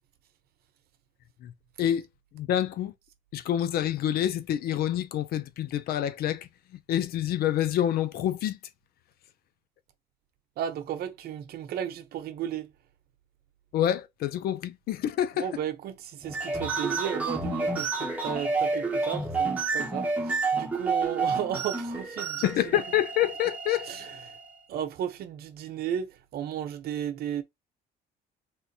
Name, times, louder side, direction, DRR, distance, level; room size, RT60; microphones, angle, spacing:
voice 1, 2.3-2.9 3.3-6.5 6.9-8.6 13.7-15.5 22.4-23.9, left 11 dB, 65° left, 0.5 m, -27 dB
voice 2, 10.6-12.7 15.4-22.5 23.9-24.3 24.7-27.4, right 9 dB, 65° right, 0.8 m, -34 dB
sound 1, 16.2-24.5, right 3 dB, 10° right, 1.0 m, -30 dB
3.5 x 2.5 x 2.7 m
cardioid pair, 110°, 17 cm